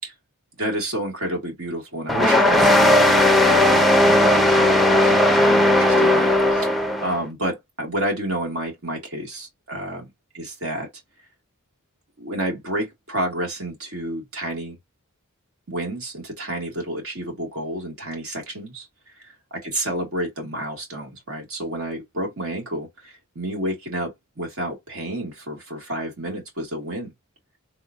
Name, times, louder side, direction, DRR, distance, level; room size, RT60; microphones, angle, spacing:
voice 1, 0.6-10.0 10.3-10.9 12.2-14.8 15.7-18.9 19.2-27.1, right 1 dB, 65° right, 1.9 m, -30 dB
sound 1, 2.1-7.2, left 1 dB, ahead, 0.5 m, -16 dB
3.8 x 2.9 x 2.6 m
head